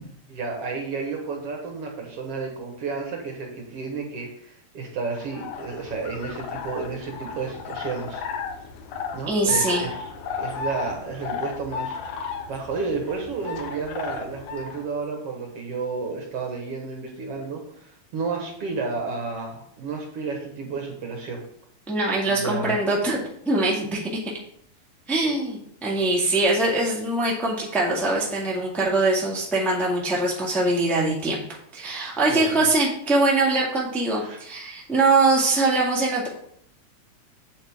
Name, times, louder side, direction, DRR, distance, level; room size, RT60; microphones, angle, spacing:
voice 1, 0.3-8.2 9.1-10.1 10.4-21.4 22.3-22.8 32.3-32.7 34.2-34.4, right 4 dB, 60° right, 1 dB, 2.1 m, -32 dB
sound 1, 5.1-14.9, left 5 dB, 75° left, 2.2 m, -34 dB
voice 2, 9.3-9.9 21.9-23.2 23.4-24.0 25.1-31.4 31.7-36.3, right 2 dB, ahead, -4 dB, 1.4 m, -22 dB
8.7 x 7.7 x 3.6 m, 0.67 s
omnidirectional pair, 3.5 m